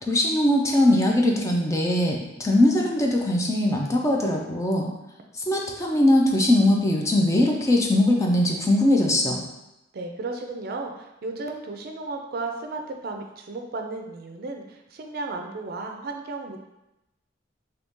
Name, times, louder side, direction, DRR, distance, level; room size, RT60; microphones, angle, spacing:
voice 1, 0.1-4.9 5.4-9.5, left 1 dB, 15° left, 0 dB, 0.4 m, -21 dB
voice 2, 9.9-16.6, right 3 dB, 55° right, 3 dB, 0.4 m, -34 dB
2.8 x 2.7 x 3.5 m, 0.92 s
head